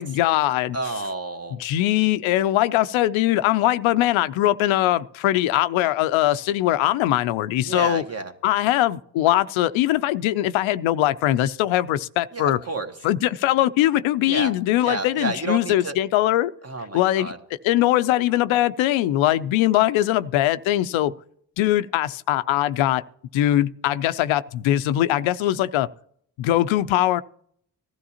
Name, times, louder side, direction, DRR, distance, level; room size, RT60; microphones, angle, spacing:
voice 1, 0.0-0.8 1.5-8.0 8.4-12.6 13.0-16.5 16.9-21.1 21.6-23.0 23.3-25.9 26.4-27.2, left 14 dB, 85° left, 0.6 m, -21 dB
voice 2, 0.7-1.6 7.6-8.3 12.3-12.9 14.3-14.5 14.8-16.0 16.6-17.4, right 3 dB, 30° right, 1.5 m, -30 dB
18.0 x 13.0 x 2.9 m
supercardioid pair, 60°, 46 cm